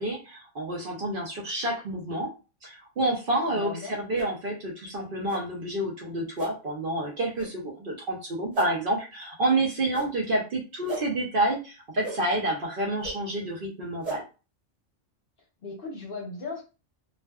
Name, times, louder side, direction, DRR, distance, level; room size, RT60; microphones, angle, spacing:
voice 1, 0.0-2.3 2.6-14.2, right 1 dB, 55° right, -1 dB, 0.7 m, -29 dB
voice 2, 3.5-4.0 15.6-16.6, left 3 dB, 55° left, 0 dB, 0.9 m, -36 dB
sound 1, 4.1-4.3 5.3-5.4 6.4-6.5 7.4-7.5 8.5-8.7 9.9-10.1 10.9-11.0 12.0-12.2 13.0-13.1 14.0-14.2, right 3 dB, 40° right, 1.2 m, -35 dB
2.4 x 2.4 x 2.2 m, 0.32 s
omnidirectional pair, 1.2 m